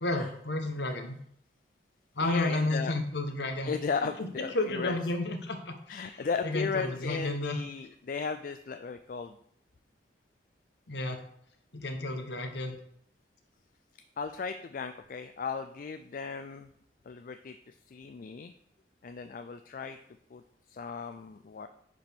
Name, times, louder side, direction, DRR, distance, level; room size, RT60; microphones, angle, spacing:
voice 1, 0.0-1.2 2.1-3.7 4.5-6.1 6.4-7.6 10.9-11.2 11.7-12.8, left 2 dB, 65° left, 5 dB, 1.1 m, -31 dB
voice 2, 2.2-3.0 3.6-5.0 5.9-9.4 14.2-16.7 17.1-18.5 19.0-20.0 20.3-20.4 20.7-21.7, left 5 dB, 45° left, 8 dB, 0.3 m, -36 dB
10.0 x 5.2 x 3.5 m, 0.68 s
head